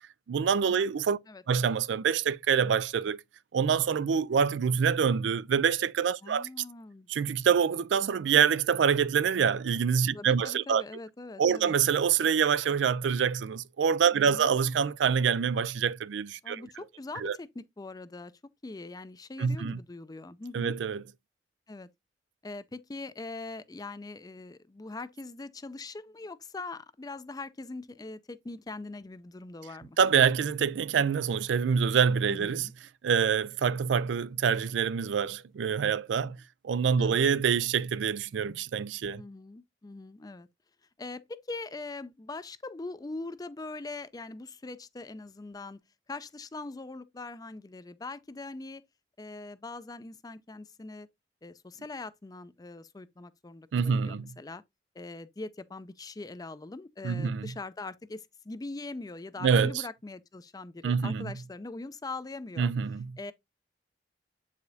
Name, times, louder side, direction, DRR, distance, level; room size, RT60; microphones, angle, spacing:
voice 1, 0.3-1.2 1.5-3.2 3.5-6.5 7.1-10.8 11.4-16.6 17.2-17.4 19.4-19.8 20.5-21.0 30.0-32.7 33.0-36.4 36.6-39.2 53.7-54.3 57.0-57.5 59.4-59.8 60.8-61.3 62.6-63.1, right 7 dB, 75° right, 0.4 m, -26 dB
voice 2, 6.2-7.1 10.1-11.7 14.1-14.5 16.4-18.3 18.6-20.8 21.7-21.9 22.4-30.0 32.3-32.7 37.0-37.2 39.2-40.5 41.0-45.8 46.1-48.8 49.2-51.1 51.4-54.6 54.9-62.7 63.2-63.3, left 3 dB, 20° left, 0.4 m, -42 dB
8.0 x 4.9 x 2.7 m
head